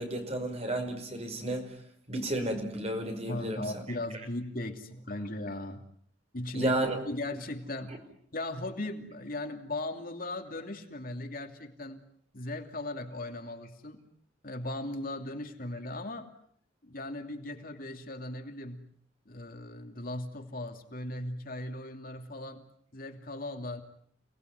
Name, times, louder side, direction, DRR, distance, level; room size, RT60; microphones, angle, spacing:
voice 1, 0.0-1.8 2.1-3.8 6.5-7.0, right 1 dB, 35° right, 5.5 m, -32 dB
voice 2, 3.3-5.8 6.3-6.7 7.0-8.0 8.3-12.0 12.3-14.0 14.4-16.3 16.8-18.9 19.3-22.6 22.9-23.8, left 1 dB, 50° left, 2.9 m, -38 dB
29.5 x 20.0 x 9.5 m
head